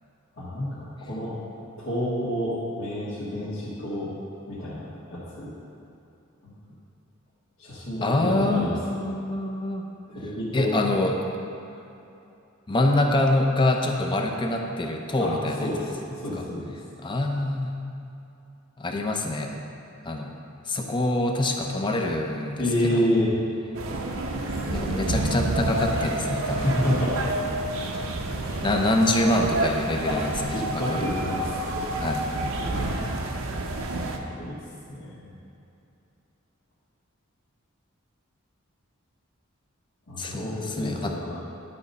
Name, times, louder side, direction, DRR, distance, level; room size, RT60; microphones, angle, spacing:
voice 1, 0.4-1.3 1.8-4.1 4.5-5.5 6.4-6.5 7.6-8.8 10.1-10.7 15.2-16.7 22.6-23.3 24.7-25.0 26.4-27.4 28.4-28.6 30.1-31.8 32.6-33.2 34.4-34.5 34.9-35.3 40.1-41.4, left 1 dB, 65° left, -12 dB, 1.8 m, -29 dB
voice 2, 8.0-9.9 10.5-11.2 12.7-15.9 16.4-16.5 17.0-17.7 18.8-19.5 20.0-20.3 20.7-23.1 24.7-26.7 28.6-31.0 32.0-32.2 40.2-41.1, left 1 dB, 25° left, 2 dB, 0.6 m, -25 dB
sound 1, 23.7-34.2, right 2 dB, 70° right, 0.7 m, -29 dB
11.0 x 4.1 x 5.4 m, 2.7 s
head